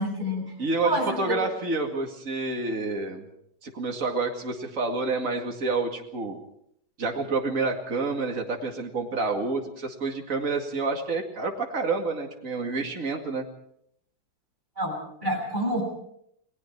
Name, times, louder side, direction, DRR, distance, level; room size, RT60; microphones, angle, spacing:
voice 1, 0.0-0.5 0.8-1.4 14.8-15.8, equal, 25° right, 0 dB, 7.8 m, -28 dB
voice 2, 0.6-3.3 3.6-6.4 7.0-13.4, right 3 dB, 45° right, 2 dB, 2.6 m, -28 dB
29.0 x 19.5 x 4.7 m, 0.71 s
omnidirectional pair, 2.0 m